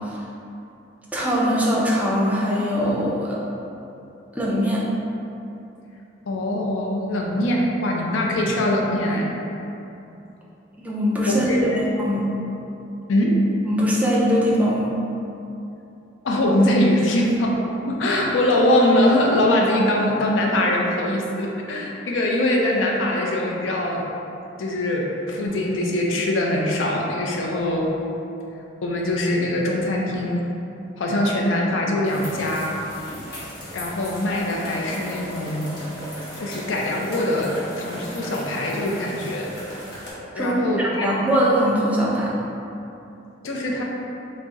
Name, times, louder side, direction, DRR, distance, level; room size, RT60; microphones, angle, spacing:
voice 1, 1.1-3.4 4.4-4.8 10.8-11.5 12.0-12.2 13.7-14.9 40.4-42.3, equal, 10° right, -5 dB, 0.4 m, -21 dB
voice 2, 6.3-9.3 11.3-11.8 13.1-13.4 16.2-17.6 17.9-24.1 24.6-27.9 28.8-30.5 31.0-32.8 33.7-35.7 36.4-39.5 40.3-41.1 43.4-43.8, left 1 dB, 85° left, -1 dB, 0.5 m, -22 dB
sound 1, 32.1-40.1, equal, 60° left, 1.0 m, -36 dB
3.9 x 2.0 x 3.5 m, 2.8 s
head